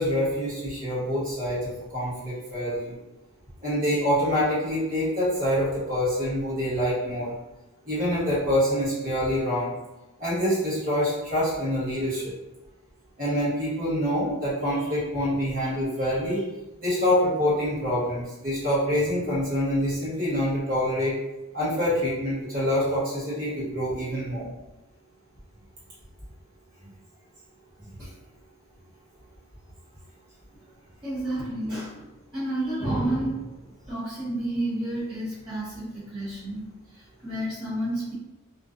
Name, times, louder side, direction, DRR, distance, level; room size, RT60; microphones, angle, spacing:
voice 1, 0.0-3.0 3.6-7.3 7.8-9.7 10.2-12.3 13.2-16.4 16.8-21.1 21.5-24.5 28.0-28.1, equal, 40° right, -9 dB, 1.2 m, -26 dB
voice 2, 31.0-38.1, right 1 dB, 20° right, -14 dB, 0.8 m, -31 dB
2.5 x 2.2 x 2.4 m, 1.0 s
head